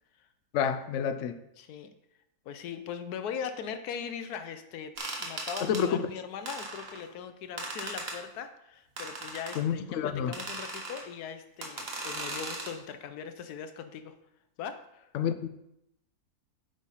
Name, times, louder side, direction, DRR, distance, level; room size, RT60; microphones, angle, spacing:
voice 1, 0.5-1.4 5.6-6.1 9.5-10.3 15.1-15.5, left 8 dB, 65° left, 11 dB, 0.8 m, -29 dB
voice 2, 1.6-1.9 2.5-4.9 5.2-14.2 14.6-15.1, left 7 dB, 85° left, 9 dB, 1.2 m, -40 dB
sound 1, 5.0-5.8 6.5-7.0 7.6-8.2 9.0-9.6 10.3-11.0 11.6-12.7, right 2 dB, 45° right, 1.3 m, -38 dB
8.2 x 4.0 x 5.5 m, 0.84 s
omnidirectional pair, 1.6 m